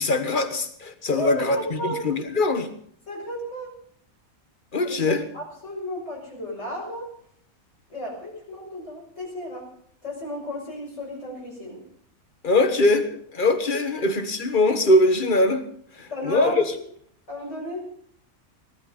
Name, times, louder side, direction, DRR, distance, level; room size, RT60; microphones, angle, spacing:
voice 1, 0.0-2.7 4.7-5.2 12.4-13.0 13.3-15.6 16.0-16.7, left 2 dB, 35° left, 8 dB, 1.5 m, -22 dB
voice 2, 1.1-2.0 3.1-3.7 4.8-7.1 7.9-9.7 10.0-11.8 12.6-12.7 14.0-14.1 16.1-16.7 17.3-17.9, equal, 55° left, -3 dB, 6.3 m, -34 dB
18.5 x 12.5 x 5.4 m, 0.63 s
omnidirectional pair, 1.5 m